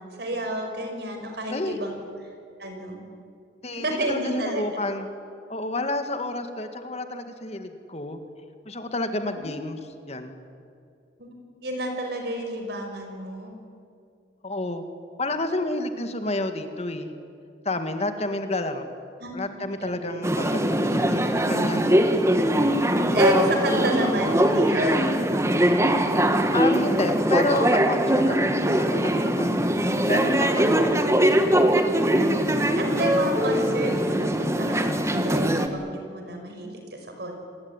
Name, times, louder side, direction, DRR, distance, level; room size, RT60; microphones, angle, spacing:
voice 1, 0.0-2.0 2.6-3.0 3.7-4.6 9.4-9.5 11.2-11.3 11.6-13.5 19.2-20.3 23.1-25.2 30.0-30.1 32.3-37.3, equal, 60° right, 4 dB, 5.7 m, -30 dB
voice 2, 3.6-5.1 5.5-8.2 8.7-9.8 10.1-10.4 14.4-14.8 15.2-17.1 17.7-18.9 19.3-21.9 26.5-30.9, left 2 dB, 35° left, 7 dB, 2.0 m, -30 dB
sound 1, 20.2-35.7, right 1 dB, 15° right, 1.7 m, -22 dB
27.5 x 21.0 x 9.8 m, 2.4 s
head